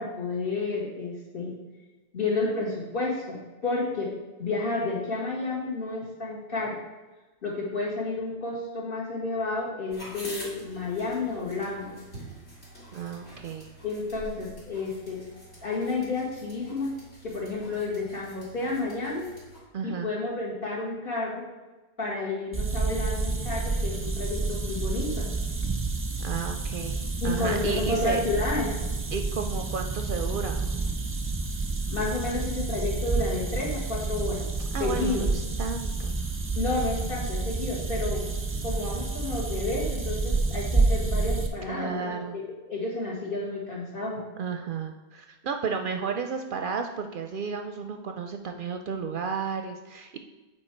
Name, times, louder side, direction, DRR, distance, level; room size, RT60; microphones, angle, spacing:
voice 1, 0.0-1.6 2.1-4.1 4.4-6.8 7.4-12.0 13.8-15.2 15.6-17.0 17.2-19.3 19.8-21.4 22.0-25.3 27.2-28.7 31.9-34.5 34.8-35.3 36.6-38.2 38.6-42.4 42.7-44.2, left 3 dB, 55° left, -4 dB, 1.9 m, -31 dB
sound 1, 9.9-19.6, equal, 80° left, 2.8 m, -46 dB
voice 2, 12.9-13.7 19.7-20.1 26.2-28.2 29.1-30.8 34.7-36.2 41.7-42.4 44.4-50.2, right 5 dB, 60° right, 5 dB, 0.6 m, -33 dB
sound 2, 22.5-41.5, right 3 dB, 20° right, 0.4 m, -29 dB
7.7 x 4.5 x 4.4 m, 1.2 s
omnidirectional pair, 1.1 m